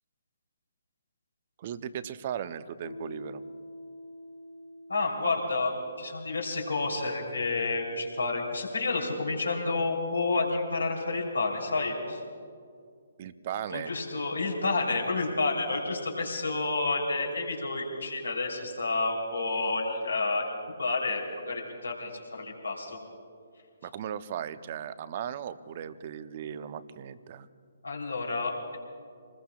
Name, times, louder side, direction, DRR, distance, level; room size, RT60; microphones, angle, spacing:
voice 1, 1.6-3.4 13.2-13.9 23.8-27.5, right 9 dB, 40° right, 13 dB, 0.7 m, -37 dB
Piano, 2.8-10.1, left 1 dB, 35° left, 2.6 m, -48 dB
voice 2, 4.9-12.2 13.7-20.4 20.8-23.0 27.8-28.8, left 3 dB, 80° left, -1 dB, 3.5 m, -30 dB
27.0 x 20.5 x 2.4 m, 2.2 s
figure-of-eight pair, 135°, 0 cm